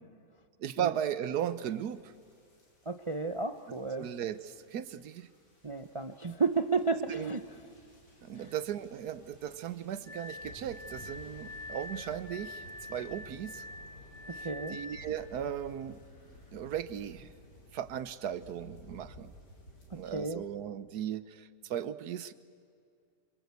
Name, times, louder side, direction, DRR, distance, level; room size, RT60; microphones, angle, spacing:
voice 1, 0.6-2.1 4.0-5.3 7.1-7.3 8.2-12.6 12.9-13.6 14.3-16.0 16.5-17.3 17.7-19.3 19.9-22.3, right 10 dB, 70° right, 14 dB, 1.4 m, -37 dB
sound 1, 1.4-20.3, left 1 dB, 85° left, 5.4 m, -55 dB
voice 2, 2.9-4.1 5.6-7.6 8.3-8.5 14.3-14.8 19.9-20.4, right 4 dB, 50° right, 9 dB, 0.3 m, -33 dB
Glass, 10.1-15.1, left 2 dB, 40° left, 3.6 m, -45 dB
27.5 x 26.0 x 8.3 m, 2.3 s
omnidirectional pair, 1.8 m